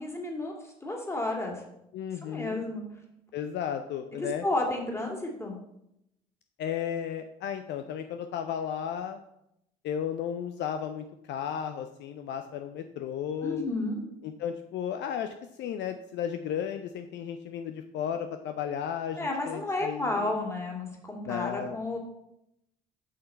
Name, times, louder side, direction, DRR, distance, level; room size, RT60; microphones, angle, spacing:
voice 1, 0.0-1.7 2.2-2.8 4.1-5.6 13.4-14.0 19.2-22.0, left 2 dB, 15° left, 0 dB, 2.3 m, -32 dB
voice 2, 1.9-2.6 3.3-4.4 6.6-9.2 9.8-13.7 14.4-20.2 21.2-21.8, left 8 dB, 55° left, 8 dB, 0.5 m, -34 dB
6.6 x 5.7 x 4.3 m, 0.80 s
hypercardioid pair, 50°, 21 cm